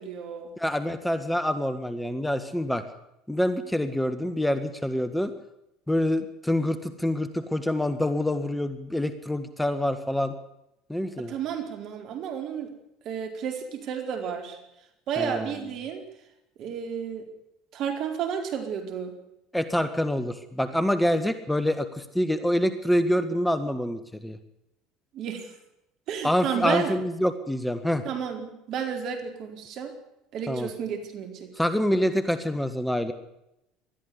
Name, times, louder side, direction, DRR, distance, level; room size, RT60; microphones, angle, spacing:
voice 1, 0.0-0.5 11.3-12.7 13.0-14.6 15.1-16.0 16.6-17.3 17.7-19.1 25.1-25.5 26.1-26.9 28.0-29.9 30.3-31.5, right 7 dB, 55° right, 5 dB, 4.4 m, -32 dB
voice 2, 0.6-2.8 3.3-5.3 5.9-10.3 10.9-11.3 15.2-15.5 19.5-24.4 26.2-28.0 30.5-30.7 31.6-33.1, left 1 dB, 5° left, 11 dB, 1.6 m, -26 dB
20.5 x 13.5 x 9.7 m, 0.86 s
hypercardioid pair, 75°, 0 cm